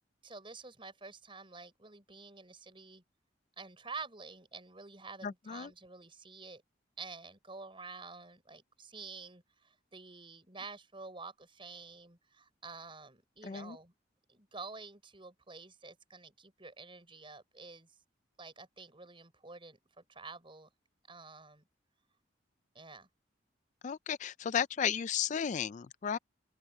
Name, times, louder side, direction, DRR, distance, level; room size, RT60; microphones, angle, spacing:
voice 1, 0.2-3.0 3.6-6.6 7.0-13.9 14.3-17.9 18.4-20.7 21.1-21.7 22.7-23.1, right 4 dB, 30° right, 6.0 m, -49 dB
voice 2, 5.2-5.7 13.4-13.8 23.8-26.2, left 8 dB, 40° left, 0.3 m, -34 dB
open air
head